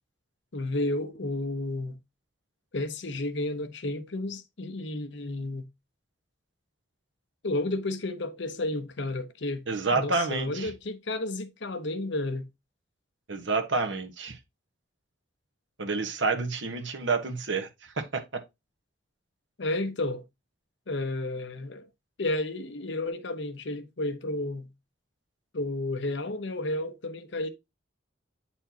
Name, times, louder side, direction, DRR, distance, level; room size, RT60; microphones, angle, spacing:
voice 1, 0.5-2.0 2.7-5.7 7.4-9.7 9.9-12.5 19.6-20.2 20.9-21.9 22.2-24.7 25.5-27.5, left 2 dB, 65° left, 0.8 m, -32 dB
voice 2, 9.7-10.7 13.3-14.4 15.8-17.7 18.0-18.4, right 4 dB, 70° right, 1.2 m, -29 dB
9.0 x 4.4 x 2.8 m
head